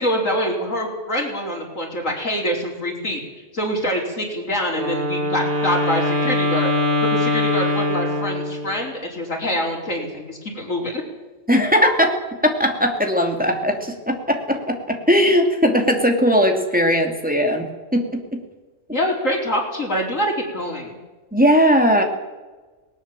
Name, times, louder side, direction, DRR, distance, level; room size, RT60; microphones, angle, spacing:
voice 1, 0.0-3.2 3.5-6.7 7.1-11.0 18.9-20.9, equal, 80° left, -1 dB, 5.0 m, -25 dB
Wind instrument woodwind instrument, 4.7-8.8, left 1 dB, 45° right, 3.8 m, -22 dB
voice 2, 11.5-18.4 21.3-22.0, equal, 5° right, 3 dB, 2.5 m, -19 dB
19.0 x 19.0 x 7.5 m, 1.3 s
omnidirectional pair, 1.3 m